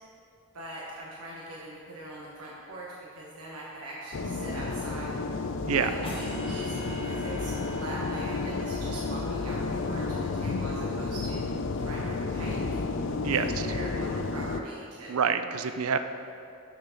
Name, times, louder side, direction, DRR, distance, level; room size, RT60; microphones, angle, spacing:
voice 1, 0.5-5.2 5.8-11.4 11.8-12.8 13.3-15.2 15.5-15.7, right 1 dB, 85° right, -5 dB, 1.1 m, -42 dB
sound 1, 4.1-14.6, left 3 dB, 55° left, 0.4 m, -31 dB
sound 2, 6.0-11.2, equal, 25° left, 1.1 m, -45 dB
voice 2, 13.2-13.7 15.1-16.0, right 7 dB, 70° right, 9 dB, 0.4 m, -27 dB
6.3 x 5.9 x 5.8 m, 2.5 s
head